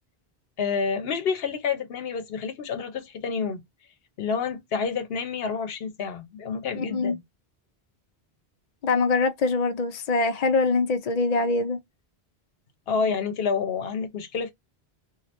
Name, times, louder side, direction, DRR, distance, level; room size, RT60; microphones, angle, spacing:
voice 1, 0.6-3.6 4.2-7.2 12.9-14.5, left 5 dB, 75° left, 0.8 m, -28 dB
voice 2, 6.7-7.2 8.8-11.8, left 3 dB, 55° left, 0.5 m, -23 dB
3.1 x 2.4 x 2.7 m
omnidirectional pair, 1.0 m